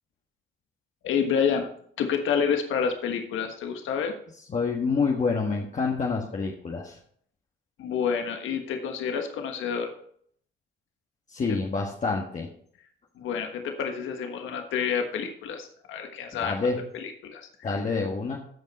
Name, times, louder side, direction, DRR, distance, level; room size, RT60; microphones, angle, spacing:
voice 1, 1.0-1.7 2.0-4.1 7.8-9.9 13.2-16.5 16.9-17.8, left 7 dB, 80° left, 4 dB, 1.4 m, -28 dB
voice 2, 4.5-7.0 11.3-12.5 16.4-16.8 17.6-18.4, left 4 dB, 40° left, -1 dB, 1.5 m, -27 dB
14.5 x 5.3 x 4.1 m, 0.62 s
cardioid pair, 90°, 20 cm